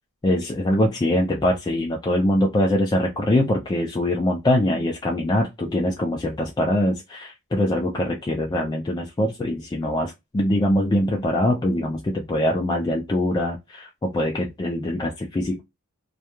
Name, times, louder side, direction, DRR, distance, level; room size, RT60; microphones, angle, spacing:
voice 1, 0.2-15.6, left 1 dB, 20° left, 0.3 m, -23 dB
2.4 x 2.2 x 2.9 m
head